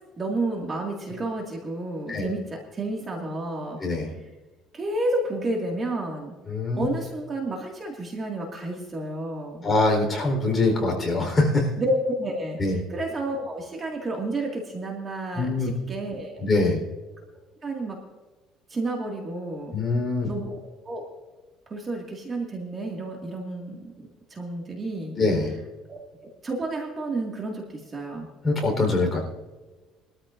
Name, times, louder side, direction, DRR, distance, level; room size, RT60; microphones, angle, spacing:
voice 1, 0.2-3.8 4.7-6.3 6.8-9.7 11.8-16.4 17.6-18.0 18.7-19.7 20.2-21.0 21.7-25.2 25.9-28.3, right 2 dB, 25° right, 0 dB, 2.0 m, -31 dB
voice 2, 3.8-4.1 6.5-6.9 9.6-11.7 12.6-12.8 15.4-15.7 16.4-16.8 19.7-20.3 25.1-25.5 28.4-29.2, left 2 dB, 20° left, 0 dB, 4.0 m, -23 dB
22.5 x 13.5 x 2.6 m, 1.2 s
cardioid pair, 145°, 0 cm